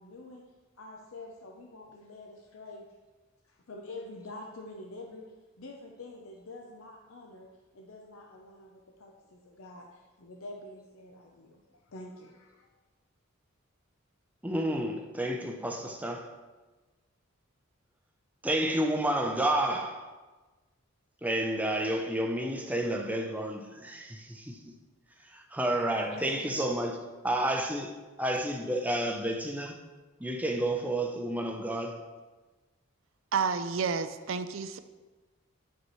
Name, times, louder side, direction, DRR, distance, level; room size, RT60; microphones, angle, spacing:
voice 1, 0.0-3.0 3.4-12.7 25.8-27.1, left 2 dB, 70° left, 0.6 m, -47 dB
voice 2, 14.4-16.3 18.4-20.1 21.2-24.6 25.2-27.0 27.2-27.9 28.2-29.8 30.2-32.0, right 1 dB, 5° right, 0.5 m, -30 dB
voice 3, 33.3-34.8, right 5 dB, 65° right, 0.4 m, -30 dB
9.8 x 5.2 x 3.1 m
head